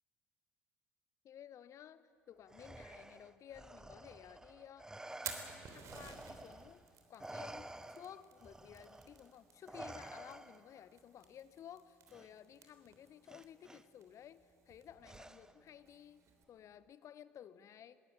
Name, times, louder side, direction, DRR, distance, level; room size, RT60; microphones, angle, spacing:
voice 1, 1.2-4.9 5.2-6.8 7.1-18.0, left 9 dB, 45° left, 16 dB, 1.0 m, -55 dB
Respiratory sounds, 2.5-6.8 7.2-10.8 12.1-12.3 13.3-13.8 15.0-15.7, right 2 dB, 10° right, 0.8 m, -51 dB
Fire, 5.0-16.4, right 6 dB, 45° right, 3.5 m, -54 dB
20.5 x 19.5 x 9.1 m, 2.3 s
figure-of-eight pair, 60°, 7 cm